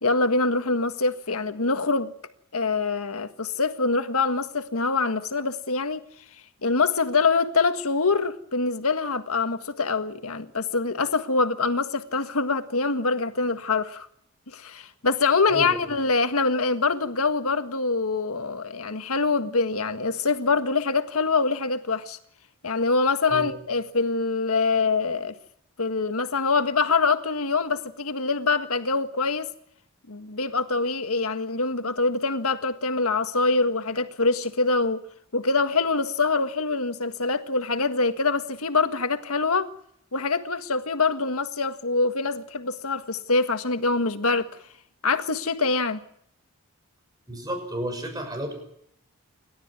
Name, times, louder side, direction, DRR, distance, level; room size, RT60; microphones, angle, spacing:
voice 1, 0.0-2.1 2.5-6.0 6.6-14.1 14.5-22.2 22.6-25.3 25.8-29.5 30.1-35.0 35.3-39.7 40.1-44.5 45.0-46.0, left 4 dB, 85° left, 1.7 m, -24 dB
voice 2, 15.5-15.9 23.3-23.5 47.3-48.5, right 1 dB, 15° right, 6.3 m, -32 dB
29.5 x 13.0 x 9.7 m
head